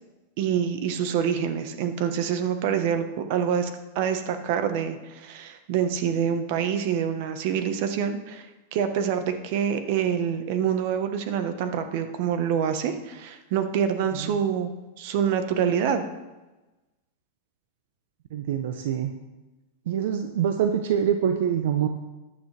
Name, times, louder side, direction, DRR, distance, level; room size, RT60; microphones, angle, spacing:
voice 1, 0.4-3.7 3.9-14.7 15.0-16.0, right 8 dB, 50° right, 8 dB, 1.2 m, -26 dB
voice 2, 18.3-19.1 19.9-21.9, right 9 dB, 70° right, 7 dB, 0.8 m, -25 dB
15.0 x 10.0 x 3.4 m, 1.1 s
supercardioid pair, 155°, 0 cm